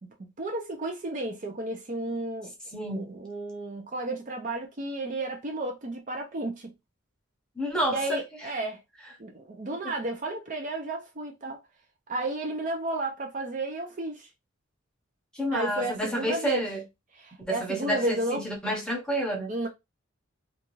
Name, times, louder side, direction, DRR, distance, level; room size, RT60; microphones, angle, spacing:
voice 1, 0.0-2.5 2.9-6.7 7.9-8.8 9.2-11.6 12.1-14.3 15.5-16.7 17.1-18.4 19.5-19.7, right 2 dB, 40° right, 0.5 m, -32 dB
voice 2, 2.7-3.1 7.6-8.2 15.3-16.8 17.4-19.5, right 1 dB, 5° left, 0.8 m, -29 dB
2.6 x 2.3 x 3.0 m
head